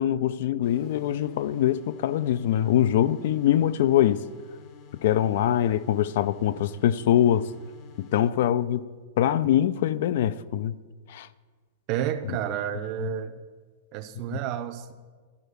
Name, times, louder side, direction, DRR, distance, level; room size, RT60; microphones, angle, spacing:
voice 1, 0.0-4.2 4.9-7.5 8.0-8.9 9.2-10.8 11.1-11.3 14.3-14.4, left 11 dB, 55° left, 0.4 m, -23 dB
sound 1, 0.6-8.3, left 6 dB, 35° left, 0.8 m, -51 dB
voice 2, 11.9-13.4 13.9-14.9, right 10 dB, 35° right, 0.6 m, -30 dB
13.0 x 4.6 x 6.7 m
supercardioid pair, 160°, 0 cm